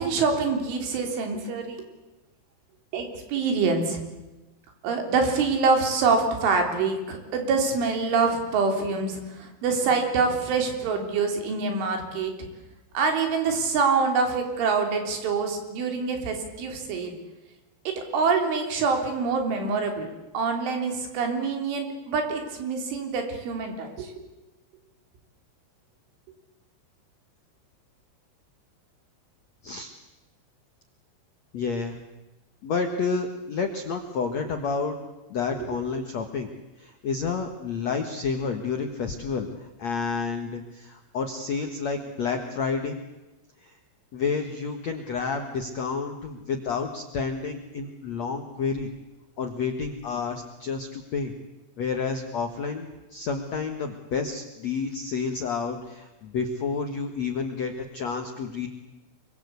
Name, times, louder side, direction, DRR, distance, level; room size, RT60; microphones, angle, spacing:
voice 1, 0.0-1.9 2.9-4.0 4.8-12.3 12.9-17.1 17.9-20.1 20.3-24.1 35.6-35.8, right 4 dB, 75° right, 4 dB, 5.9 m, -25 dB
voice 2, 31.5-32.0 32.6-35.0 35.3-36.5 36.8-43.0 43.6-43.7 44.1-48.9 49.4-51.3 51.8-58.7, left 5 dB, 80° left, 5 dB, 1.5 m, -30 dB
26.0 x 24.0 x 8.3 m, 1.1 s
omnidirectional pair, 5.7 m